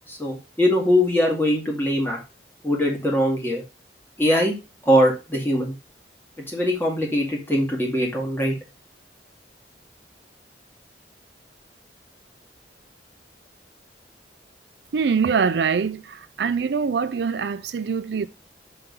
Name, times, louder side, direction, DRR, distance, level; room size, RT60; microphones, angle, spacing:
voice 1, 0.1-2.2 2.6-3.6 4.2-4.6 4.9-5.7 6.5-8.6, equal, 10° left, 1.9 m, -21 dB
voice 2, 14.9-18.3, right 6 dB, 70° right, 0.4 m, -24 dB
5.6 x 3.8 x 5.3 m
head